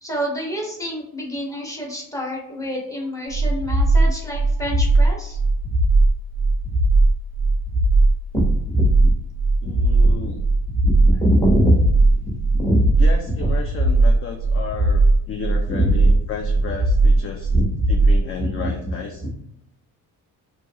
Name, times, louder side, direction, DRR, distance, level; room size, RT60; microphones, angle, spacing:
voice 1, 0.0-5.4 8.7-9.1 10.0-10.3 10.8-11.8 12.2-12.9 13.4-13.5 15.7-15.9 17.5-17.7 18.4-18.8, equal, 10° left, -3 dB, 1.0 m, -24 dB
sound 1, 3.3-18.2, right 2 dB, 35° right, 0.5 m, -18 dB
voice 2, 9.6-10.4 13.0-17.5 17.9-19.2, left 5 dB, 40° left, 1 dB, 0.4 m, -33 dB
2.7 x 2.4 x 2.9 m, 0.76 s
cardioid pair, 100°, 38 cm